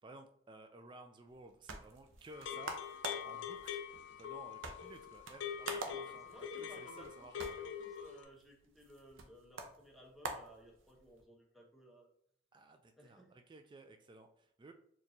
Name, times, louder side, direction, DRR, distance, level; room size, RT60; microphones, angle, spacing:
voice 1, 0.0-2.8 3.2-7.5 12.5-14.7, right 2 dB, 25° right, 6 dB, 0.3 m, -56 dB
sound 1, 1.3-11.2, right 3 dB, 75° right, 0.6 m, -49 dB
sound 2, 2.3-8.2, left 8 dB, 65° left, 0.5 m, -44 dB
voice 2, 5.9-12.1 13.0-13.4, equal, ahead, -1 dB, 0.8 m, -59 dB
4.2 x 3.0 x 2.6 m, 0.67 s
head